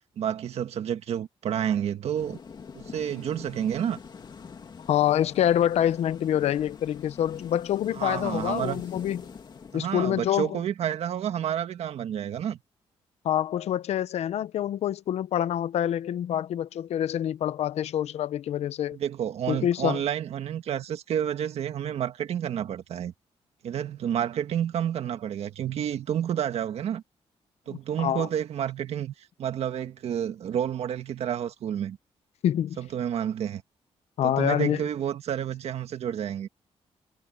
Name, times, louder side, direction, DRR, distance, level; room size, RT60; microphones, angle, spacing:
voice 1, 0.2-2.4 2.7-4.0 7.9-8.8 9.7-12.6 18.9-23.1 23.6-27.0 27.7-32.0 32.8-33.6 34.2-36.5, right 9 dB, 70° right, 1.7 m, -30 dB
sound 1, 2.1-10.3, left 6 dB, 40° left, 2.6 m, -45 dB
voice 2, 4.9-9.2 9.7-10.6 13.2-19.0 19.5-20.0 27.7-28.3 32.4-32.8 34.2-34.8, left 11 dB, 75° left, 0.8 m, -26 dB
cardioid pair, 135°, 11 cm